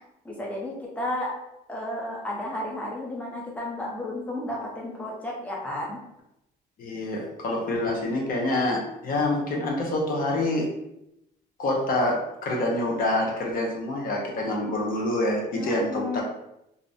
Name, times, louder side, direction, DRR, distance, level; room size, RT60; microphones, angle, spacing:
voice 1, 0.2-1.3 1.7-6.0 15.6-16.2, left 1 dB, 10° left, -3 dB, 0.6 m, -32 dB
voice 2, 6.8-10.7 11.6-16.2, left 1 dB, 55° left, -1 dB, 0.6 m, -26 dB
2.5 x 2.0 x 2.6 m, 0.84 s
cardioid pair, 110°, 17 cm